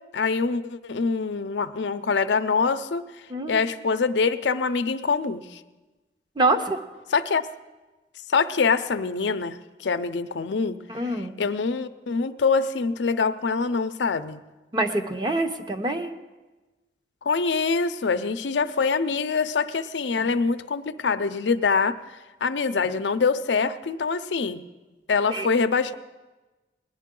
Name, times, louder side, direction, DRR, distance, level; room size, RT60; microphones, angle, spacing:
voice 1, 0.1-3.0 3.5-5.6 7.1-7.4 8.3-10.8 11.4-14.4 17.2-24.7 25.1-25.9, left 4 dB, 85° left, 10 dB, 0.5 m, -24 dB
voice 2, 3.3-3.7 6.4-6.8 10.9-11.4 14.7-16.1 20.2-20.3 22.7-22.9 25.3-25.5, right 2 dB, 25° right, 6 dB, 0.7 m, -26 dB
19.5 x 10.5 x 3.8 m, 1.2 s
head